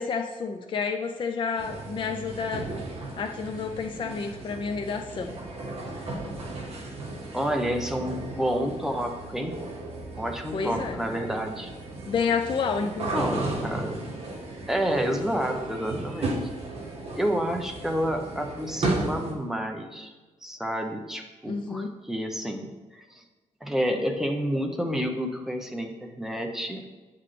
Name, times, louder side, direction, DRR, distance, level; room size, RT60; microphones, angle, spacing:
voice 1, 0.0-2.6 3.2-5.4 10.5-11.0 12.1-13.4 21.5-21.9, left 5 dB, 40° left, 4 dB, 0.4 m, -30 dB
sound 1, 1.6-19.3, right 2 dB, 50° right, 1.7 m, -35 dB
voice 2, 7.3-9.6 10.2-11.7 12.8-14.0 14.7-16.4 17.1-20.1 20.4-22.7 22.9-23.2 23.6-26.8, equal, 5° right, 3 dB, 0.7 m, -29 dB
8.9 x 5.9 x 3.3 m, 1.2 s
wide cardioid pair, 165°, 13 cm